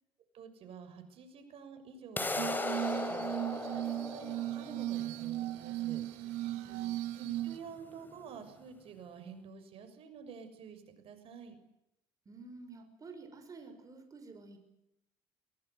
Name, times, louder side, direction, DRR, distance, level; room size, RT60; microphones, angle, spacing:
voice 1, 0.3-6.5 7.1-11.6, right 6 dB, 55° right, 8 dB, 6.5 m, -50 dB
sound 1, 2.2-8.1, left 2 dB, 15° left, 4.4 m, -38 dB
Glass, 2.4-7.6, right 15 dB, 80° right, 1.7 m, -37 dB
voice 2, 6.4-7.0 12.2-14.6, right 3 dB, 30° right, 6 dB, 6.2 m, -51 dB
23.0 x 21.5 x 8.1 m, 0.85 s
supercardioid pair, 95°, 11 cm